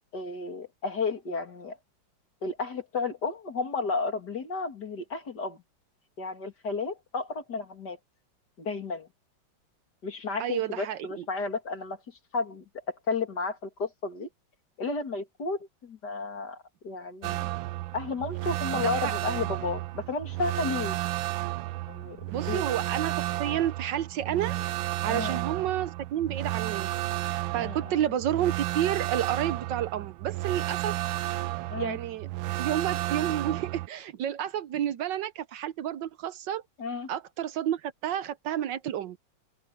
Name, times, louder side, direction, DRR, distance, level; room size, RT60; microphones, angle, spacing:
voice 1, 0.1-1.8 2.4-5.6 6.2-8.0 8.6-9.1 10.0-12.0 12.3-14.3 14.8-17.5 17.9-21.0 21.9-22.7 25.1-25.4 27.6-28.0 31.7-32.0 36.8-37.1, left 4 dB, 55° left, 3.2 m, -33 dB
voice 2, 10.4-11.2 18.8-19.1 22.3-24.6 25.0-26.9 27.5-31.0 31.8-32.3 32.6-36.6 37.1-39.2, right 11 dB, 70° right, 1.3 m, -30 dB
sound 1, 17.2-33.9, right 17 dB, 90° right, 1.4 m, -32 dB
omnidirectional pair, 2.1 m